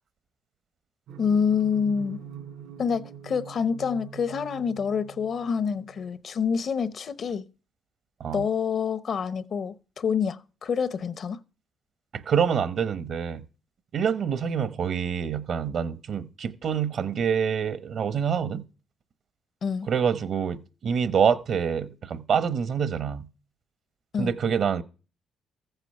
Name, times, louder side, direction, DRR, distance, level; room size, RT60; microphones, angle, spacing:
sound 1, 1.1-6.1, right 9 dB, 85° right, 4.1 m, -44 dB
voice 1, 1.2-2.2 2.8-7.5 8.3-11.4 19.6-19.9 24.1-24.3, left 6 dB, 55° left, 0.8 m, -27 dB
voice 2, 12.1-13.4 13.9-18.6 19.9-23.3 24.2-24.8, right 7 dB, 60° right, 1.0 m, -26 dB
14.5 x 8.2 x 5.4 m
cardioid pair, 90°, 0 cm